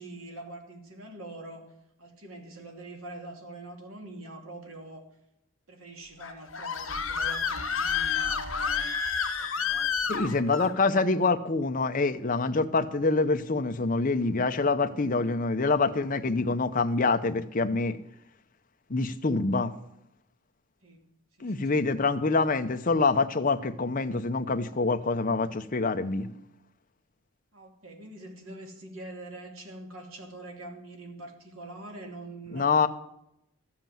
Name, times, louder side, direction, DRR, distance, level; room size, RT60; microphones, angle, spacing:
voice 1, 0.0-1.7 2.0-5.0 5.7-8.9 9.4-10.2 20.8-21.0 21.4-21.9 27.5-32.9, right 2 dB, 75° right, 3 dB, 2.8 m, -44 dB
Screaming, 6.2-10.7, left 6 dB, 70° left, 1.8 m, -29 dB
voice 2, 10.1-18.0 18.9-19.7 21.4-26.3 32.5-32.9, left 3 dB, 40° left, 7 dB, 0.7 m, -26 dB
13.5 x 7.5 x 7.6 m, 0.81 s
head